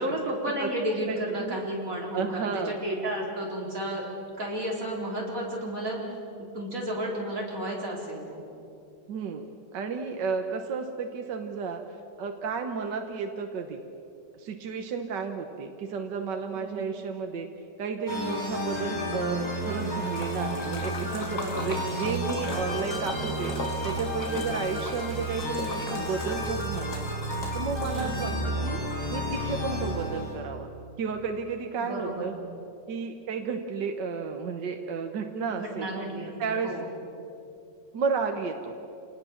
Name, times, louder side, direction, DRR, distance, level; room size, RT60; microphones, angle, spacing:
voice 1, 0.0-6.0 6.4-8.4 16.5-16.9 21.3-21.8 27.8-28.3 31.8-32.3 35.5-36.8, right 1 dB, 45° right, -2 dB, 4.8 m, -32 dB
voice 2, 1.1-1.6 2.1-2.8 9.1-11.8 12.2-13.8 14.3-17.5 17.8-27.1 27.5-28.8 29.1-30.7 31.0-32.3 32.9-35.9 36.4-36.8 37.9-38.7, right 5 dB, 70° right, 4 dB, 1.8 m, -32 dB
sound 1, 18.1-30.4, equal, 15° left, 4.9 m, -32 dB
Splash splatter, 19.5-28.6, left 2 dB, 55° left, 2.8 m, -40 dB
28.0 x 19.5 x 7.2 m, 2.7 s
omnidirectional pair, 2.0 m